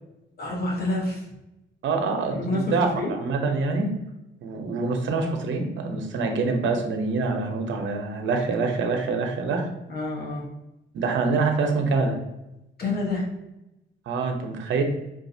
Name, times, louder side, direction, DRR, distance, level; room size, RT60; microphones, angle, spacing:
voice 1, 0.4-1.3 2.3-3.2 9.9-10.5 12.8-13.3, left 2 dB, 55° left, -3 dB, 1.2 m, -28 dB
voice 2, 1.8-2.9 3.2-3.9 4.4-9.7 10.9-12.2 14.1-14.8, right 4 dB, 75° right, 3 dB, 0.9 m, -25 dB
5.5 x 2.7 x 2.7 m, 0.93 s
cardioid pair, 90°, 20 cm